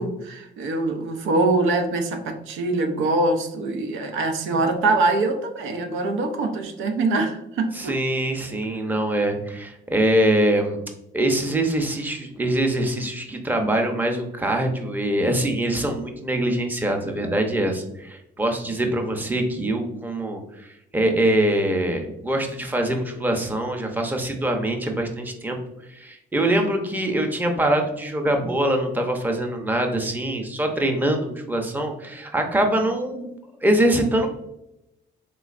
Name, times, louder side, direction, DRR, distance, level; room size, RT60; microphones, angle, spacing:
voice 1, 0.0-7.9, right 2 dB, 85° right, 5 dB, 0.6 m, -23 dB
voice 2, 7.7-10.8 11.1-25.6 25.9-33.3 33.6-34.3, right 1 dB, 10° right, 3 dB, 0.6 m, -23 dB
3.6 x 3.0 x 2.4 m, 0.86 s
cardioid pair, 90°, 20 cm